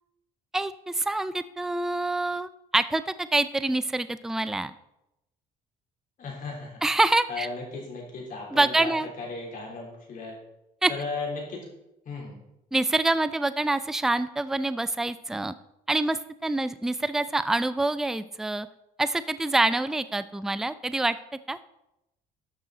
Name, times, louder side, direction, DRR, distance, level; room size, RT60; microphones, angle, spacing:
voice 1, 0.5-4.7 6.8-7.5 8.5-9.1 10.8-10.9 12.7-15.5 15.9-18.7 19.0-21.2 21.5-21.6, right 2 dB, 5° right, 13 dB, 0.3 m, -26 dB
voice 2, 6.2-6.8 7.3-8.9 9.2-10.4 10.9-11.6 12.0-12.4, left 3 dB, 55° left, -1 dB, 3.3 m, -35 dB
11.5 x 6.3 x 3.9 m, 0.88 s
cardioid pair, 110°, 17 cm